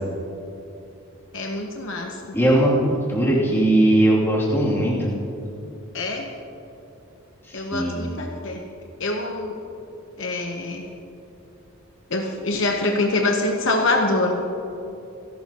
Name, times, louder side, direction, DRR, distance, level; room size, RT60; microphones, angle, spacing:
voice 1, 1.3-2.4 5.9-6.3 7.5-8.6 9.0-9.6 10.2-10.9 12.1-14.4, left 2 dB, 60° left, 2 dB, 1.1 m, -25 dB
voice 2, 2.3-5.1 7.7-8.1, right 1 dB, 10° left, -6 dB, 2.9 m, -19 dB
27.0 x 12.0 x 3.0 m, 2.9 s
head